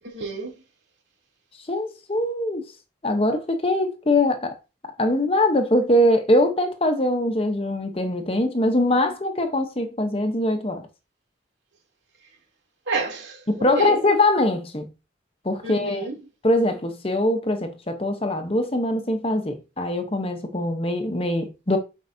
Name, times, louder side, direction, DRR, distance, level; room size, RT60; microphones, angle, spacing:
voice 1, 0.0-0.6 12.9-14.0 15.6-16.2, right 3 dB, 70° right, 2.9 m, -29 dB
voice 2, 1.7-2.7 3.0-4.6 5.0-10.8 13.5-14.9 15.4-16.1 16.4-21.8, left 1 dB, 30° left, 0.9 m, -22 dB
7.9 x 5.3 x 2.7 m
head